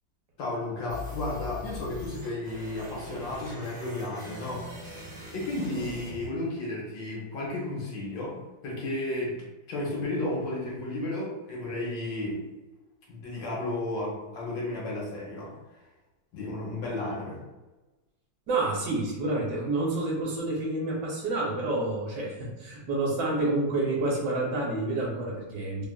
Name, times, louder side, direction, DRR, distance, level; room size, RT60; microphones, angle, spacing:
voice 1, 0.4-4.6 5.3-8.4 8.6-12.4 13.1-15.5 16.3-17.4, left 2 dB, 75° left, -4 dB, 1.5 m, -33 dB
sound 1, 0.9-6.9, left 1 dB, 10° right, 1.2 m, -42 dB
voice 2, 18.5-25.9, right 2 dB, 70° right, -2 dB, 1.3 m, -29 dB
3.4 x 2.4 x 2.2 m, 1.1 s
omnidirectional pair, 2.1 m